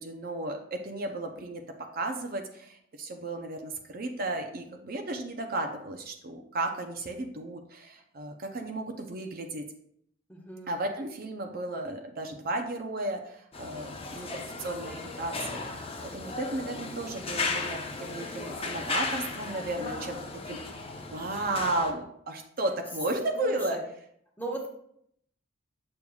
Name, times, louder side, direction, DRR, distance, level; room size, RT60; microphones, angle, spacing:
voice 1, 0.0-1.6 1.9-9.6 10.7-15.6 16.0-20.2 20.5-23.8, right 2 dB, 50° right, 4 dB, 0.6 m, -34 dB
voice 2, 10.3-10.7 23.4-23.8 24.4-24.7, right 2 dB, 10° left, -1 dB, 1.1 m, -36 dB
sound 1, 13.5-21.9, left 3 dB, 30° left, 0.7 m, -36 dB
7.0 x 6.4 x 2.3 m, 0.70 s
head